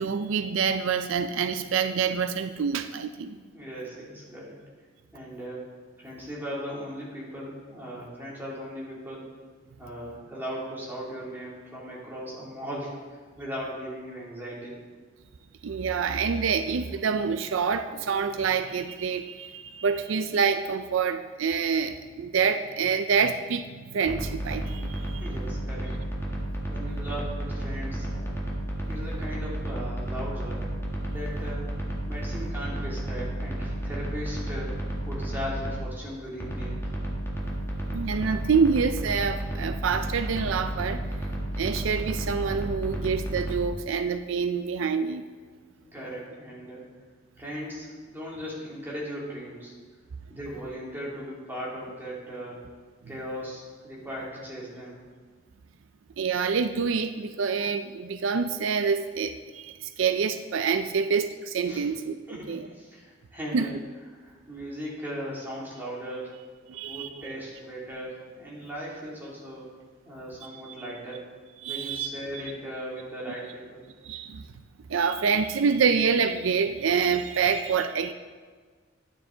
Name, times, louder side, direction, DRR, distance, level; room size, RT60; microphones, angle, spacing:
voice 1, 0.0-3.4 15.6-25.2 37.9-41.0 41.6-45.2 56.2-62.2 62.5-62.7 63.5-63.7 66.7-67.2 70.4-70.5 71.6-72.1 74.0-74.5 74.9-78.1, right 6 dB, 80° right, 9 dB, 0.4 m, -26 dB
voice 2, 3.5-4.6 5.1-5.6 6.0-9.3 9.8-14.8 25.1-25.9 26.7-28.4 28.9-30.7 31.1-31.7 32.0-36.7 45.8-46.9 47.4-49.7 50.3-52.6 53.1-55.0 61.7-61.9 62.3-63.7 64.1-66.3 66.9-69.7 70.0-71.2 71.7-73.8, equal, 10° right, -6 dB, 2.8 m, -38 dB
sound 1, 24.0-35.8 36.4-43.6, right 1 dB, 15° left, 1.6 m, -32 dB
11.5 x 9.3 x 3.9 m, 1.5 s
head